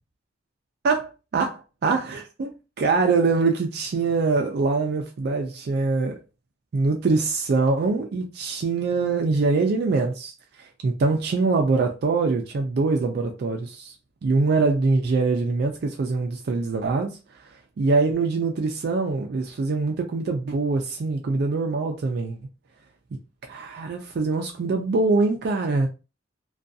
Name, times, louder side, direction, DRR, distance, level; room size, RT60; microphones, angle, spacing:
voice 1, 0.8-6.2 6.7-13.9 14.2-22.4 23.5-25.9, right 3 dB, 55° right, 0.3 m, -24 dB
2.5 x 2.2 x 2.5 m
head